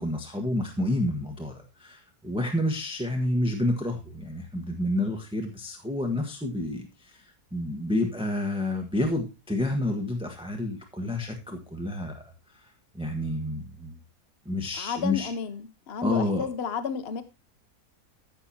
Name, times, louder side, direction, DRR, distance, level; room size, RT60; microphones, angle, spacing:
voice 1, 0.0-7.2 7.5-12.2 12.9-13.9 14.4-15.3 16.0-16.5, left 1 dB, 5° right, 1.2 m, -29 dB
voice 2, 14.8-17.2, left 7 dB, 55° left, 0.8 m, -32 dB
14.5 x 6.8 x 2.8 m
omnidirectional pair, 1.7 m